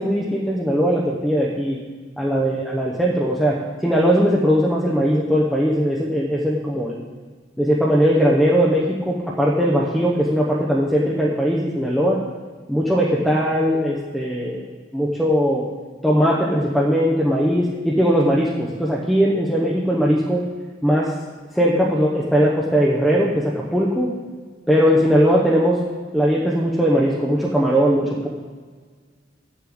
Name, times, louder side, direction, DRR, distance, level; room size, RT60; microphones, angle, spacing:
voice 1, 0.0-1.8 2.2-3.6 3.8-7.0 7.6-12.2 12.7-15.7 16.0-20.4 20.8-21.1 21.5-24.1 24.7-25.8 26.1-28.3, equal, ahead, -4 dB, 0.8 m, -19 dB
7.5 x 7.1 x 7.7 m, 1.5 s
head